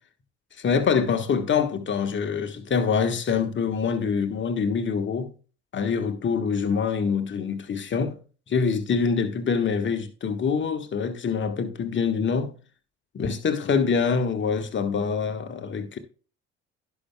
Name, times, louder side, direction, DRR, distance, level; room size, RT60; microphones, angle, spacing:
voice 1, 0.6-5.3 5.7-8.1 8.5-12.5 13.1-16.0, left 6 dB, 30° left, 1.3 m, -25 dB
17.0 x 5.8 x 2.2 m
figure-of-eight pair, 50°, 36 cm